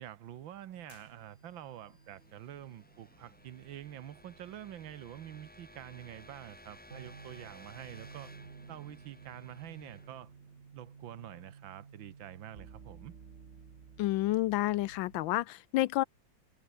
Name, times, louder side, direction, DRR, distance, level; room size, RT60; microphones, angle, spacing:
voice 1, 0.0-8.3 8.7-10.3 10.7-13.2, right 11 dB, 85° right, 1.8 m, -47 dB
sound 1, 0.7-15.4, right 6 dB, 40° right, 1.6 m, -55 dB
sound 2, 0.9-1.9, left 8 dB, 65° left, 2.0 m, -64 dB
sound 3, 1.5-11.3, left 1 dB, 5° left, 1.3 m, -57 dB
voice 2, 14.0-16.0, left 16 dB, 90° left, 1.4 m, -29 dB
omnidirectional pair, 2.1 m